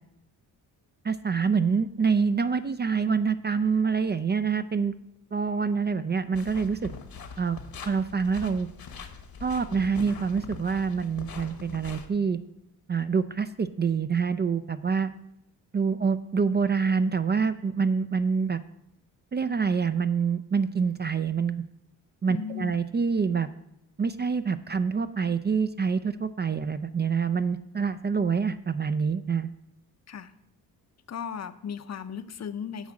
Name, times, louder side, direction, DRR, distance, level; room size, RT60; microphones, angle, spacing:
voice 1, 1.0-4.9 5.3-6.9 7.4-7.6 7.9-8.7 9.4-12.4 12.9-15.1 15.7-18.6 19.3-21.6 22.2-23.5 24.0-29.5, right 5 dB, 25° right, 11 dB, 0.4 m, -26 dB
sound 1, 6.3-12.1, left 5 dB, 60° left, 1.2 m, -42 dB
voice 2, 22.3-22.8 30.1-30.3 31.1-32.9, left 7 dB, 40° left, 11 dB, 0.7 m, -36 dB
8.1 x 4.8 x 7.4 m, 0.83 s
cardioid pair, 70°, 40 cm